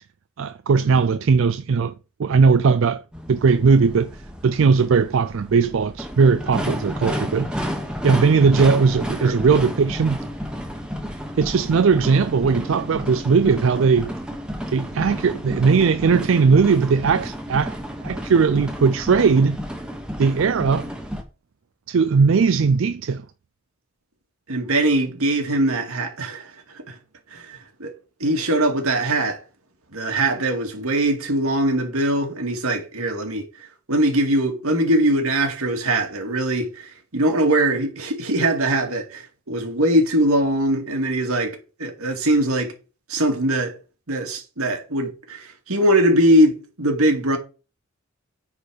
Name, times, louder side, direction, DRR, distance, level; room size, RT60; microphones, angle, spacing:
voice 1, 0.4-1.9 2.2-3.0 3.3-4.1 4.4-7.6 8.0-10.2 11.4-14.1 14.7-17.8 18.0-19.6 20.2-20.9 21.9-23.2, right 5 dB, 65° right, 0.4 m, -18 dB
sound 1, 3.1-21.2, equal, 5° right, 1.2 m, -31 dB
voice 2, 24.5-26.5 26.9-27.0 27.3-27.9 28.2-29.4 29.9-33.4 33.9-42.7 43.1-43.7 44.1-47.4, right 1 dB, 85° right, 2.2 m, -21 dB
9.6 x 4.2 x 6.4 m
head